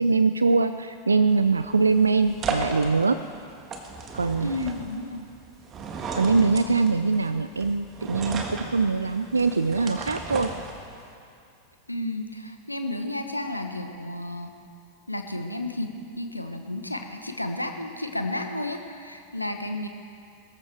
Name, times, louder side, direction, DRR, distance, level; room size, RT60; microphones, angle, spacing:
voice 1, 0.0-3.2 4.1-4.5 6.1-10.5, right 4 dB, 75° right, 11 dB, 0.4 m, -22 dB
sound 1, 1.3-11.1, right 4 dB, 30° right, 1.6 m, -35 dB
voice 2, 4.4-5.3 11.9-14.5 15.1-19.9, left 1 dB, 85° left, 6 dB, 0.9 m, -32 dB
22.0 x 14.0 x 3.4 m, 2.5 s
figure-of-eight pair, 90°, 0 cm